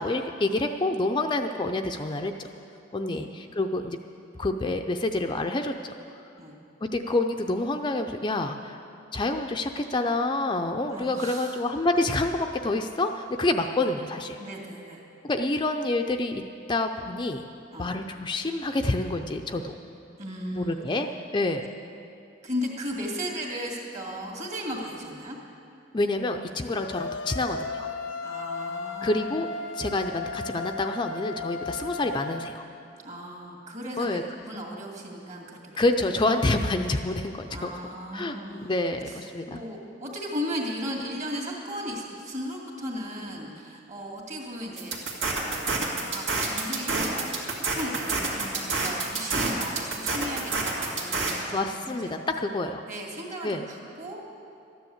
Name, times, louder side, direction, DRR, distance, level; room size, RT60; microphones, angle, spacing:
voice 1, 0.0-2.5 2.9-4.0 4.4-5.9 6.8-8.8 9.1-14.4 15.2-16.4 16.7-17.4 17.8-19.8 20.5-21.6 25.9-27.9 29.0-29.5 29.7-32.7 34.0-34.2 35.8-37.7 38.1-39.6 51.4-52.8 53.4-53.6, left 2 dB, 25° left, 5 dB, 0.5 m, -27 dB
voice 2, 10.9-11.6 14.4-15.0 17.7-17.9 20.2-21.0 22.4-25.4 28.2-29.4 33.0-36.2 37.5-38.7 39.1-44.9 45.3-45.8 46.1-52.2 52.9-54.2, equal, 40° right, 0 dB, 2.3 m, -36 dB
sound 1, 26.8-32.5, left 4 dB, 80° left, 0.8 m, -35 dB
sound 2, 44.8-51.3, right 3 dB, 75° right, 2.3 m, -28 dB
13.5 x 9.9 x 7.8 m, 2.6 s
head